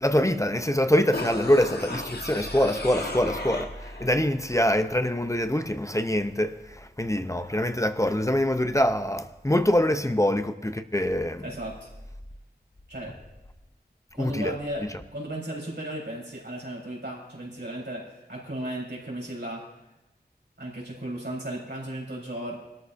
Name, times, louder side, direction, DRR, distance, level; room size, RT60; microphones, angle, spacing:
voice 1, 0.0-11.5 14.2-14.6, left 1 dB, 15° left, 0.6 m, -24 dB
sound 1, 1.1-4.1 4.4-4.5, left 2 dB, 65° left, 1.4 m, -35 dB
voice 2, 11.4-11.9 12.9-13.2 14.1-19.7 20.6-22.6, right 1 dB, 85° right, 4.0 m, -35 dB
21.0 x 13.0 x 2.6 m
wide cardioid pair, 40°, 18 cm